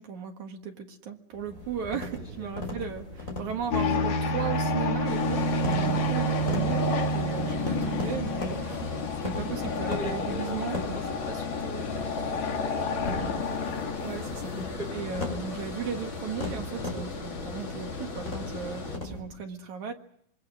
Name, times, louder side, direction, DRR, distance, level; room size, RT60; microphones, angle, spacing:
voice 1, 0.0-6.9 7.1-10.8 14.0-14.5 14.9-19.9, right 7 dB, 55° right, 4 dB, 2.7 m, -36 dB
sound 1, 1.3-19.2, left 2 dB, 20° left, 6.5 m, -39 dB
voice 2, 2.2-2.5 5.9-6.1 9.8-13.3 14.4-14.9, right 1 dB, 15° right, 3 dB, 3.9 m, -41 dB
sound 2, 3.7-15.8, left 1 dB, 55° left, 3.1 m, -30 dB
Water, 5.0-19.0, left 4 dB, 35° left, 2.8 m, -38 dB
26.0 x 24.0 x 6.2 m, 0.73 s
omnidirectional pair, 4.3 m